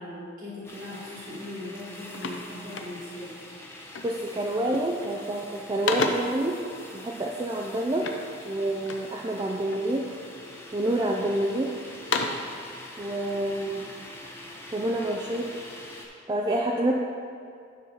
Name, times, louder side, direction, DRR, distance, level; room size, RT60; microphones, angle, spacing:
voice 1, 0.0-3.4, left 1 dB, 40° right, -7 dB, 1.4 m, -39 dB
sound 1, 0.6-16.1, left 1 dB, 10° left, 0.7 m, -44 dB
sound 2, 1.3-1.5 1.7-3.3 3.9-4.3 4.6-5.1 5.4-6.5 8.0-9.2 9.7-10.3 10.8-11.5 11.9-12.6, left 4 dB, 60° left, 0.6 m, -33 dB
voice 2, 4.0-6.6 6.9-8.1 8.4-10.1 10.7-11.7 13.0-13.8 14.7-15.5 16.3-16.9, right 1 dB, 20° right, -1 dB, 0.3 m, -27 dB
9.4 x 5.5 x 3.9 m, 2.3 s
head